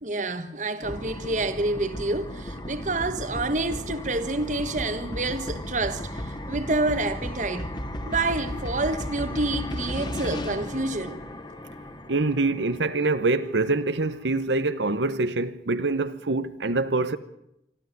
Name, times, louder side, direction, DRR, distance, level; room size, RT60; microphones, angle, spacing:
voice 1, 0.0-7.7 8.0-11.2, right 2 dB, 45° right, 1.4 m, -28 dB
sound 1, 0.8-13.6, left 1 dB, 25° left, 2.0 m, -35 dB
voice 2, 12.1-17.2, right 3 dB, 85° right, 1.1 m, -25 dB
25.5 x 13.5 x 9.6 m
head